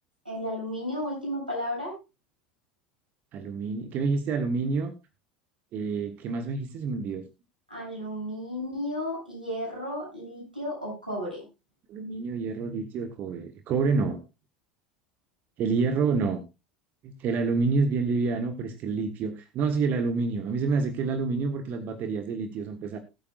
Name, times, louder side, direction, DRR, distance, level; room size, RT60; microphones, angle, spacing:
voice 1, 0.2-2.0 7.7-11.5, equal, 85° right, -3 dB, 7.9 m, -33 dB
voice 2, 3.3-4.9 5.7-7.2 11.9-14.2 15.6-16.4 17.0-23.0, right 4 dB, 40° right, 8 dB, 1.4 m, -28 dB
20.5 x 8.7 x 2.5 m, 0.26 s
figure-of-eight pair, 75°, 5 cm